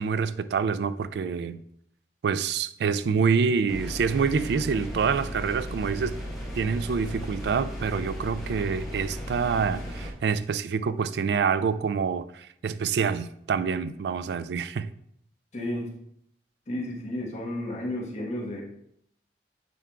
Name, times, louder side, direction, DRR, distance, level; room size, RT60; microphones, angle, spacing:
voice 1, 0.0-1.6 2.2-6.1 6.6-14.9, right 5 dB, 70° right, 0.3 m, -26 dB
sound 1, 3.7-10.1, equal, ahead, 1.7 m, -36 dB
voice 2, 15.5-15.9 16.7-18.6, left 1 dB, 40° left, 1.4 m, -32 dB
9.1 x 4.5 x 2.4 m
head